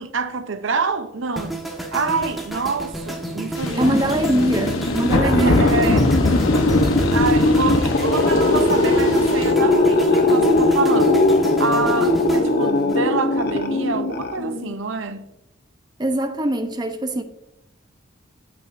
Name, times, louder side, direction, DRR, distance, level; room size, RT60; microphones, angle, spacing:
voice 1, 0.0-1.6 1.9-4.0 4.3-4.5 5.2-6.2 7.1-15.3, right 4 dB, 65° right, 0.7 m, -26 dB
sound 1, 1.4-13.5 13.8-14.1, right 1 dB, ahead, 1.4 m, -31 dB
sound 2, 3.6-9.5, left 2 dB, 85° left, 1.0 m, -23 dB
sound 3, 3.6-14.7, left 2 dB, 50° left, 0.7 m, -20 dB
voice 2, 3.8-5.7 16.0-17.2, right 1 dB, 20° right, 0.7 m, -22 dB
15.0 x 5.8 x 2.6 m
head